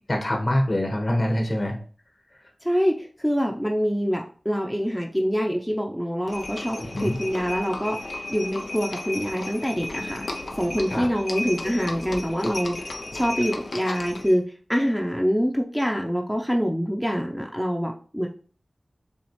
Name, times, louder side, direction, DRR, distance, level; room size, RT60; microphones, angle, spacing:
voice 1, 0.1-1.8 6.8-7.2 10.9-11.1, left 1 dB, 45° left, 2 dB, 1.2 m, -24 dB
voice 2, 2.6-14.4 14.7-18.3, equal, ahead, 0 dB, 0.6 m, -25 dB
Livestock farm animals working animals, 6.3-14.4, left 2 dB, 80° left, 0.6 m, -34 dB
7.1 x 2.4 x 3.1 m, 0.41 s
wide cardioid pair, 50°, 0 cm